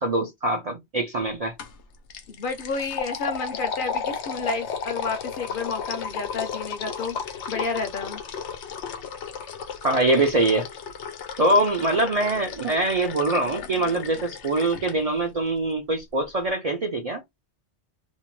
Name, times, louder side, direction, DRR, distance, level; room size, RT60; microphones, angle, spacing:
voice 1, 0.0-1.5 9.8-10.7 11.4-17.2, right 2 dB, 50° right, 0.4 m, -23 dB
sound 1, 1.6-1.8 2.1-14.9, left 6 dB, 85° left, 0.9 m, -34 dB
voice 2, 2.3-8.2, left 4 dB, 60° left, 0.6 m, -31 dB
2.7 x 2.1 x 3.0 m
omnidirectional pair, 1.2 m